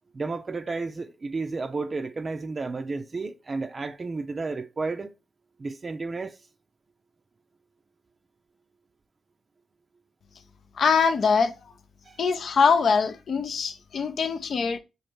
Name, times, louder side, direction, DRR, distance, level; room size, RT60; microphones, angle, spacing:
voice 1, 0.1-5.1 5.6-6.4 12.0-12.2, right 3 dB, 45° right, 0.4 m, -32 dB
voice 2, 10.8-11.5 12.2-14.8, left 5 dB, 65° left, 0.5 m, -23 dB
5.0 x 2.5 x 3.0 m
supercardioid pair, 45°, 0 cm